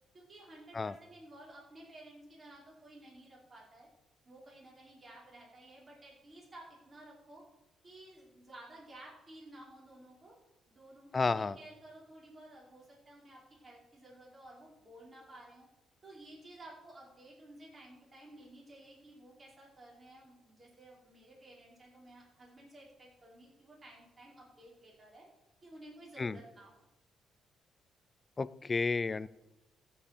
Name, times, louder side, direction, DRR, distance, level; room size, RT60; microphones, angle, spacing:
voice 1, 0.1-3.9 4.2-7.4 7.8-10.4 10.7-15.7 16.0-25.3 25.6-26.9, right 1 dB, 30° right, -4 dB, 4.9 m, -54 dB
voice 2, 11.1-11.6 26.2-26.4 28.4-29.3, left 4 dB, 30° left, 18 dB, 0.4 m, -31 dB
14.5 x 5.6 x 6.8 m, 0.92 s
cardioid pair, 90°, 0 cm